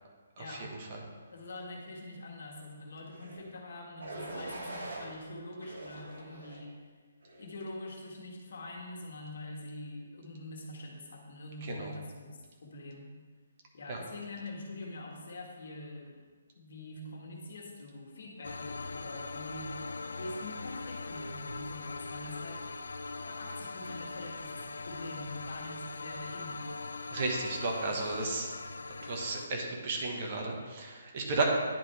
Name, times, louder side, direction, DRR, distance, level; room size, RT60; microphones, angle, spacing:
voice 1, 0.3-0.7 1.3-6.9 7.4-13.1 13.7-16.2 16.5-19.7 20.1-22.9 23.2-26.8, left 1 dB, 65° left, -1 dB, 1.5 m, -44 dB
sound 1, 3.1-3.4 4.0-5.1 5.6-6.6 7.2-7.6, right 1 dB, 70° right, 1.7 m, -43 dB
voice 2, 11.6-11.9 13.9-14.0 27.1-28.5 28.9-31.4, right 3 dB, 40° right, 0 dB, 1.3 m, -34 dB
sound 2, 18.4-29.5, left 3 dB, 85° left, 0.4 m, -41 dB
10.0 x 4.4 x 3.3 m, 1.5 s
hypercardioid pair, 155°, 0 cm